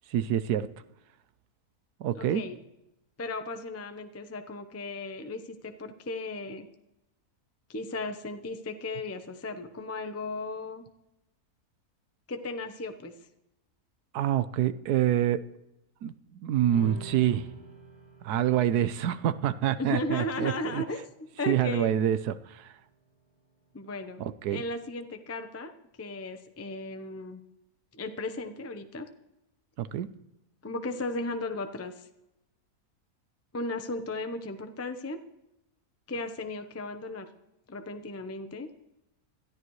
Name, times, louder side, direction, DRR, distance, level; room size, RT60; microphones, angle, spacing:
voice 1, 0.1-0.7 2.0-2.4 14.1-15.4 16.0-17.5 18.2-20.8 21.5-22.7 24.2-24.6 29.8-30.1, right 11 dB, 80° right, 13 dB, 1.2 m, -27 dB
voice 2, 2.1-2.6 3.2-6.7 7.7-10.8 12.3-13.1 19.8-21.0 21.4-21.9 23.7-24.2 24.5-25.7 26.0-27.4 27.9-29.1 30.6-32.1 33.5-35.2 36.1-37.3 37.7-38.7, left 2 dB, 15° left, 7 dB, 0.5 m, -35 dB
sound 1, 16.7-23.5, right 5 dB, 5° right, 6.8 m, -50 dB
21.0 x 13.5 x 3.2 m, 0.90 s
omnidirectional pair, 1.7 m